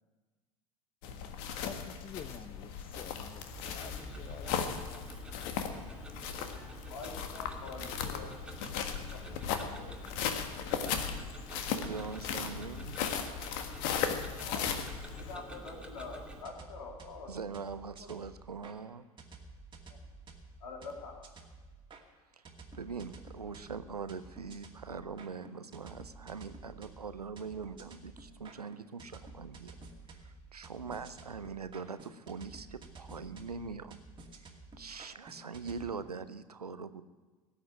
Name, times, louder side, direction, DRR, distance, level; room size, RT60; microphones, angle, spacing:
sound 1, 1.0-15.3, left 7 dB, 55° left, 1.6 m, -37 dB
voice 1, 1.6-5.2, left 7 dB, 30° left, 12 dB, 0.7 m, -49 dB
Tick-tock, 3.5-16.4, right 1 dB, 5° right, 2.4 m, -48 dB
voice 2, 6.9-8.3 9.6-9.9 14.4-14.7 15.3-17.3 19.9-20.0 20.6-21.2, left 4 dB, 75° left, 1 dB, 3.1 m, -45 dB
voice 3, 11.7-13.0 17.3-19.1 22.4-22.5 22.7-29.7 30.1-34.0 34.4-34.5 34.8-37.0, right 5 dB, 90° right, 13 dB, 0.7 m, -42 dB
sound 2, 16.4-18.7 19.2-22.0 22.4-35.9, right 3 dB, 25° right, 2.4 m, -52 dB
17.5 x 8.0 x 9.0 m, 1.3 s
figure-of-eight pair, 75°, 19 cm